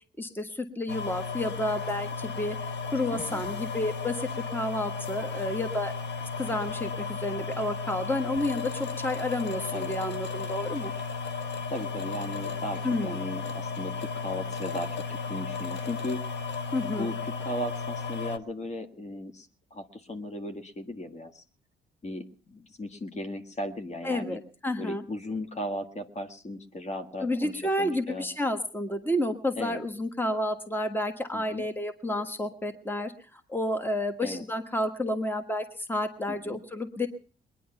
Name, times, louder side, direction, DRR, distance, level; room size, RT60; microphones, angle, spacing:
voice 1, 0.2-2.6 2.9-5.9 6.4-10.9 12.8-13.2 16.7-17.1 24.0-25.0 27.2-37.1, left 1 dB, 10° left, 8 dB, 1.4 m, -30 dB
sound 1, 0.9-18.4, left 5 dB, 60° left, 1.2 m, -34 dB
voice 2, 3.1-3.4 9.7-9.9 11.7-16.2 16.9-21.4 22.0-24.4 24.8-28.2 29.5-29.8 31.3-31.6 34.2-34.4 36.3-36.6, left 1 dB, 35° left, 6 dB, 1.6 m, -36 dB
20.5 x 10.0 x 5.7 m, 0.41 s
cardioid pair, 90°, 20 cm